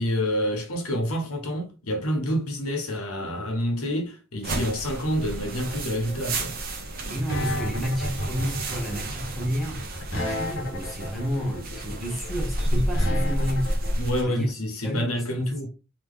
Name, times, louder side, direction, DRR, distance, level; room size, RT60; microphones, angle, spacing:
voice 1, 0.0-6.6 13.9-15.7, equal, 85° left, 1.4 m, -28 dB
sound 1, 4.4-14.2, right 1 dB, 40° right, 0.9 m, -30 dB
sound 2, 5.7-13.9, equal, 60° left, 1.3 m, -32 dB
voice 2, 7.0-9.8 10.1-13.7 14.2-14.5 14.8-15.7, equal, ahead, 1.2 m, -31 dB
3.8 x 3.2 x 3.5 m
head